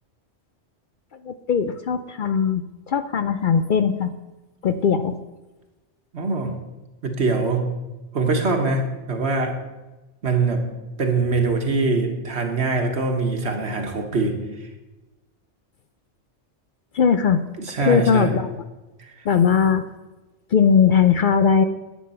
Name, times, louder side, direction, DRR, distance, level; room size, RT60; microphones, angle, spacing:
voice 1, 1.3-4.1 4.6-5.2 16.9-17.4 17.8-18.5 19.3-19.8 20.5-21.6, left 7 dB, 60° left, 10 dB, 0.6 m, -19 dB
voice 2, 6.1-6.5 7.0-7.7 8.1-9.6 10.2-10.6 11.0-14.7 17.6-18.3, right 3 dB, 70° right, 4 dB, 1.7 m, -23 dB
10.0 x 8.5 x 5.6 m, 1.1 s
omnidirectional pair, 1.2 m